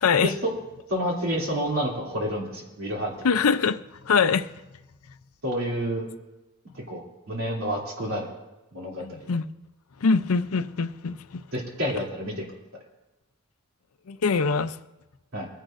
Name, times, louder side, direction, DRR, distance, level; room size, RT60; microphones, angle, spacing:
voice 1, 0.0-0.3 3.2-4.5 9.0-9.5 10.0-11.4 14.1-14.8, left 5 dB, 75° left, 0.6 m, -23 dB
voice 2, 0.9-3.3 5.4-6.1 6.9-8.3 8.7-9.2 11.5-12.3 15.3-15.5, equal, 65° right, 3.0 m, -29 dB
23.0 x 10.0 x 2.6 m
head